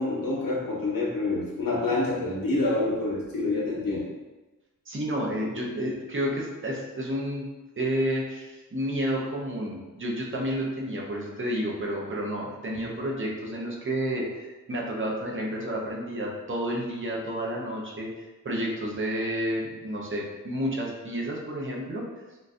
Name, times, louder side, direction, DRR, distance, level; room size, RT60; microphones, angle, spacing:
voice 1, 0.0-4.1, left 2 dB, 90° left, -4 dB, 0.9 m, -27 dB
voice 2, 4.9-7.5 7.8-18.1 18.4-22.0, equal, 40° right, -2 dB, 0.7 m, -30 dB
3.7 x 2.6 x 2.4 m, 1.1 s
wide cardioid pair, 105°, 33 cm